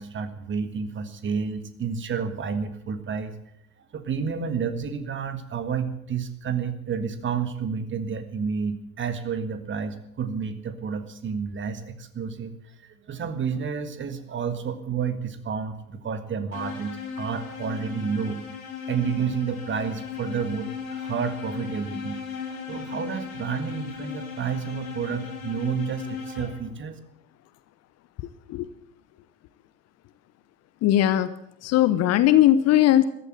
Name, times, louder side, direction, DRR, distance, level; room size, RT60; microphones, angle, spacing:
voice 1, 0.0-3.3 3.9-12.5 12.8-18.4 18.9-22.2 22.7-27.0, right 6 dB, 25° right, 10 dB, 1.7 m, -30 dB
sound 1, 16.5-26.9, left 6 dB, 70° left, 3.0 m, -37 dB
voice 2, 30.8-31.3 31.6-33.0, left 12 dB, 35° left, 14 dB, 0.9 m, -19 dB
14.5 x 12.5 x 7.6 m, 0.77 s
figure-of-eight pair, 70°, 42 cm